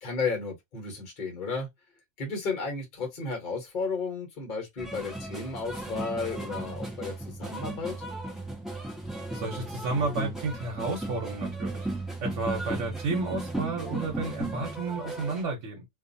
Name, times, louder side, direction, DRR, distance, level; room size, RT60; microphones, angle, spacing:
voice 1, 0.0-1.7 2.2-8.0, left 4 dB, 45° left, 1.1 m, -33 dB
sound 1, 4.8-15.4, right 1 dB, ahead, 0.7 m, -35 dB
voice 2, 9.3-15.9, right 3 dB, 85° right, 1.2 m, -32 dB
2.5 x 2.5 x 2.5 m
omnidirectional pair, 1.2 m